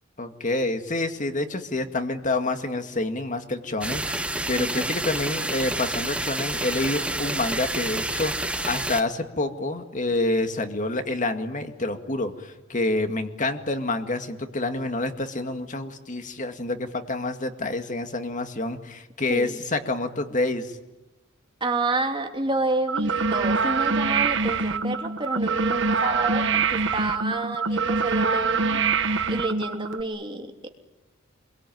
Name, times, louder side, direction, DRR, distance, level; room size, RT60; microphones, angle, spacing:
voice 1, 0.2-20.8, left 2 dB, 40° left, 7 dB, 2.1 m, -28 dB
sound 1, 3.8-9.0, right 2 dB, 5° right, 1.0 m, -29 dB
voice 2, 4.6-5.0 19.3-19.6 21.6-28.8 29.3-30.7, right 2 dB, 25° right, 3 dB, 3.1 m, -29 dB
sound 2, 22.9-30.0, right 4 dB, 65° right, 1.5 m, -24 dB
27.0 x 23.0 x 9.4 m, 1.0 s
head